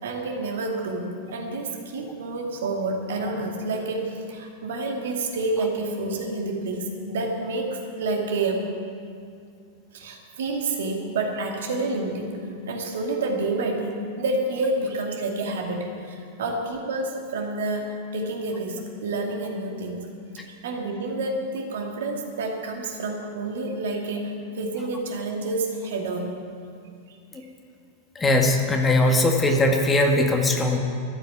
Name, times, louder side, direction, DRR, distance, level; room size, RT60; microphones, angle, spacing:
voice 1, 0.0-8.8 9.9-20.1 20.5-26.3 27.1-27.4, right 2 dB, 60° right, 1 dB, 2.3 m, -29 dB
voice 2, 28.1-30.8, left 1 dB, 15° left, 2 dB, 1.7 m, -20 dB
13.0 x 9.2 x 9.9 m, 2.4 s
figure-of-eight pair, 90°, 0 cm